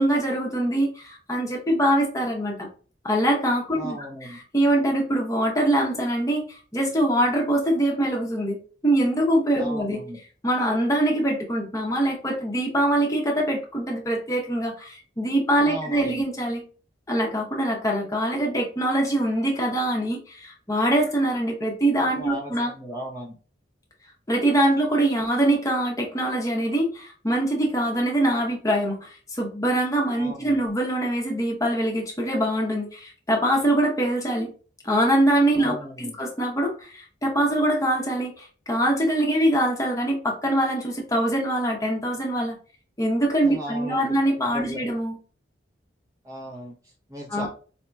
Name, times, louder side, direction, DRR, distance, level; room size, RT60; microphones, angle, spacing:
voice 1, 0.0-2.7 3.0-8.6 8.8-10.0 10.4-16.6 17.1-22.7 24.3-34.5 34.8-42.6 43.0-45.1 47.3-47.5, right 1 dB, 15° left, 0 dB, 0.8 m, -23 dB
voice 2, 3.8-4.4 9.6-10.2 15.6-16.2 22.2-23.3 30.1-30.6 35.6-36.2 43.4-44.2 44.5-44.9 46.2-47.5, equal, 15° right, -2 dB, 0.6 m, -37 dB
4.2 x 2.8 x 2.2 m, 0.38 s
head